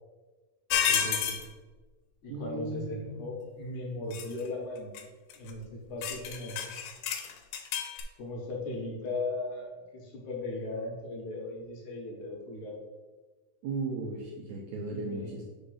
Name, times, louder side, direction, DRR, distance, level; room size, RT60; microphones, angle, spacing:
sound 1, 0.7-1.4 4.1-4.4 5.0-5.1 5.3-5.5 6.0-8.0, left 8 dB, 90° left, 2.4 m, -30 dB
voice 1, 0.9-1.4 2.2-4.9 5.3-6.6 8.2-12.8 14.9-15.3, left 2 dB, 70° left, -2 dB, 2.3 m, -37 dB
voice 2, 2.3-3.3 13.6-15.4, right 2 dB, 80° right, -1 dB, 1.7 m, -36 dB
5.1 x 3.9 x 5.5 m, 1.2 s
omnidirectional pair, 4.0 m